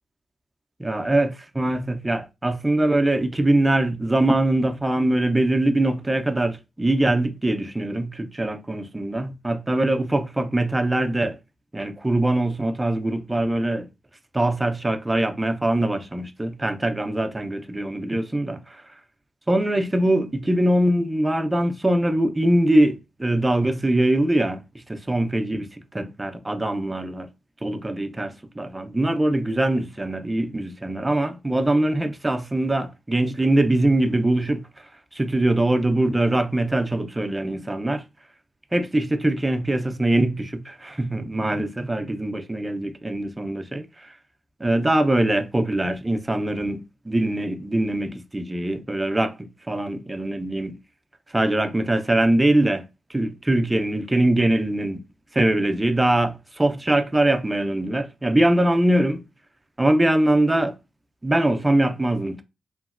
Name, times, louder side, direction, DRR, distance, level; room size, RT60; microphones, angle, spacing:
voice 1, 0.8-11.4 11.7-13.9 14.3-18.8 19.5-27.3 27.6-38.0 38.7-44.2 44.6-50.8 51.3-52.8 53.1-55.0 55.3-59.2 59.8-60.8 61.2-62.4, right 1 dB, 20° right, 0.5 m, -22 dB
2.9 x 2.6 x 2.4 m
cardioid pair, 55°, 0 cm